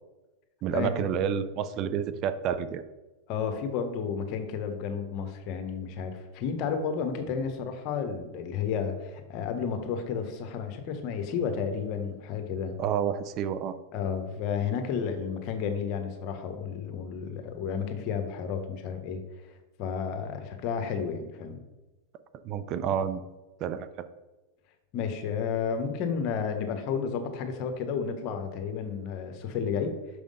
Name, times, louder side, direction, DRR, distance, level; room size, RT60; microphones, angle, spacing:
voice 1, 0.6-2.8 12.8-13.8 22.4-23.2 23.6-23.9, right 8 dB, 45° right, 12 dB, 0.5 m, -29 dB
voice 2, 3.3-12.8 13.9-19.2 19.8-21.6 24.9-29.9, left 6 dB, 50° left, 6 dB, 1.1 m, -32 dB
6.3 x 3.4 x 5.4 m, 1.1 s
hypercardioid pair, 110°, 0 cm